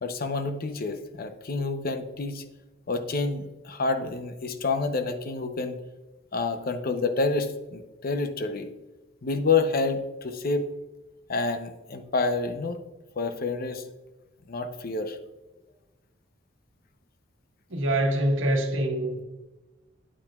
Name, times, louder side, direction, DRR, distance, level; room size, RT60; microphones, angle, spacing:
voice 1, 0.0-2.4 2.9-5.8 6.3-8.7 9.2-10.7 11.3-12.8 13.2-13.8 14.5-15.2, left 3 dB, 50° left, 0.7 m, -28 dB
voice 2, 17.7-19.2, right 1 dB, 90° right, 1.5 m, -25 dB
8.8 x 8.6 x 2.4 m
head